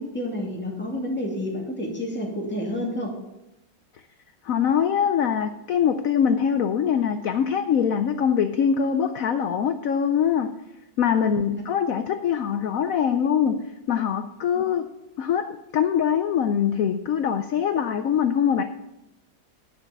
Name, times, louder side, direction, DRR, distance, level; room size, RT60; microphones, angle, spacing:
voice 1, 0.0-3.2 11.4-11.5 14.6-14.7, left 1 dB, 5° left, -2 dB, 2.2 m, -30 dB
voice 2, 4.5-10.5 11.0-14.9 15.2-18.6, left 8 dB, 85° left, 9 dB, 0.7 m, -23 dB
10.5 x 5.8 x 7.2 m, 0.91 s
omnidirectional pair, 2.1 m